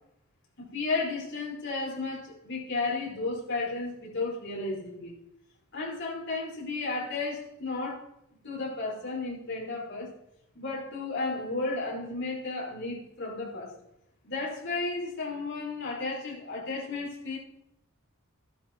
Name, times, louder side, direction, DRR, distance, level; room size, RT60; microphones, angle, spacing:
voice 1, 0.7-5.1 5.7-8.1 8.4-10.1 10.6-13.7 14.2-17.4, left 3 dB, 55° left, -3 dB, 5.3 m, -33 dB
13.0 x 13.0 x 4.6 m, 0.80 s
head